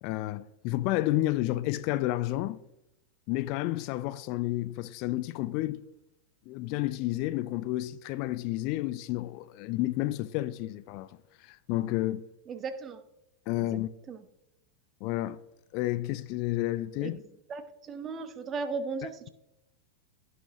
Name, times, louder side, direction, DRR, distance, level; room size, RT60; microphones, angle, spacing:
voice 1, 0.0-2.6 3.3-5.8 6.5-12.2 13.5-13.9 15.0-15.4 15.7-17.2, left 16 dB, 45° left, 0.4 m, -31 dB
voice 2, 12.5-13.0 13.6-13.8 14.1-14.3 17.0-17.2 17.5-19.3, right 4 dB, 25° right, 0.9 m, -36 dB
16.5 x 6.2 x 2.9 m
figure-of-eight pair, 90°, 0 cm